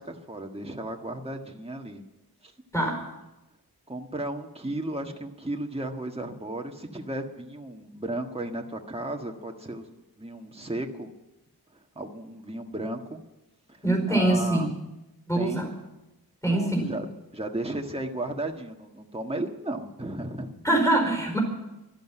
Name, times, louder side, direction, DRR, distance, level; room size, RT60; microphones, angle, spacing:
voice 1, 0.0-2.0 2.4-2.5 3.9-9.9 10.2-11.1 11.7-13.2 13.7-14.7 15.3-15.7 16.4-17.1 17.3-20.6, right 1 dB, 15° right, 2 dB, 1.6 m, -34 dB
voice 2, 2.7-3.1 13.8-14.7 15.3-15.7 16.4-16.9 20.6-21.4, right 1 dB, 10° left, 1 dB, 4.6 m, -24 dB
12.0 x 12.0 x 9.9 m, 0.99 s
wide cardioid pair, 70°, 38 cm